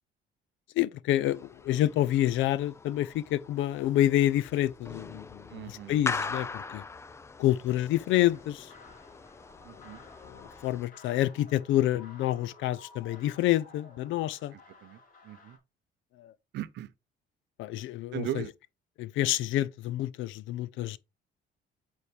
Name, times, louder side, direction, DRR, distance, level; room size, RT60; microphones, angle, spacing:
voice 1, 0.8-6.8 7.4-8.7 10.3-14.5 16.2-16.3 17.6-18.4 19.0-21.0, left 13 dB, 75° left, 0.5 m, -28 dB
sound 1, 1.2-10.9, left 4 dB, 15° left, 0.3 m, -41 dB
voice 2, 5.5-6.0 9.6-10.0 14.5-15.0 15.2-15.6 16.5-16.9 18.1-18.5, right 12 dB, 60° right, 0.7 m, -38 dB
sound 2, 8.1-15.6, left 3 dB, 45° left, 2.5 m, -54 dB
8.4 x 4.3 x 3.3 m
cardioid pair, 135°, 20 cm